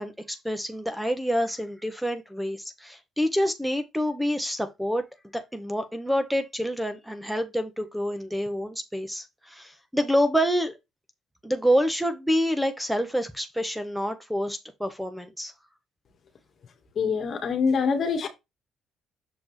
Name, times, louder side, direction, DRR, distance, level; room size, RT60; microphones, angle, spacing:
voice 1, 0.0-5.0 5.3-10.8 11.4-15.5, equal, ahead, 1.1 m, -27 dB
voice 2, 16.9-18.3, left 5 dB, 55° left, 1.7 m, -25 dB
6.8 x 5.1 x 3.2 m
supercardioid pair, 65°, 0 cm